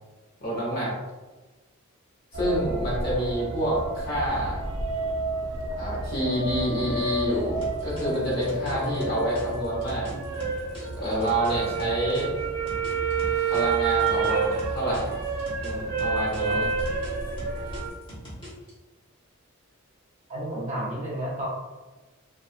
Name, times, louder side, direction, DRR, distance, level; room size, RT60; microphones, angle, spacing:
voice 1, 0.4-0.9 2.3-4.6 5.8-10.1 10.9-12.3 13.5-15.1 15.6-16.7, right 1 dB, 50° left, -7 dB, 1.1 m, -28 dB
sound 1, 2.3-17.9, right 4 dB, 75° right, 0.4 m, -29 dB
sound 2, 7.6-12.2 12.7-15.7 16.0-18.7, left 1 dB, 25° left, 1.0 m, -42 dB
voice 2, 8.6-9.0 16.4-16.6 20.3-21.5, right 1 dB, 35° right, -4 dB, 0.8 m, -32 dB
2.4 x 2.3 x 2.5 m, 1.2 s
head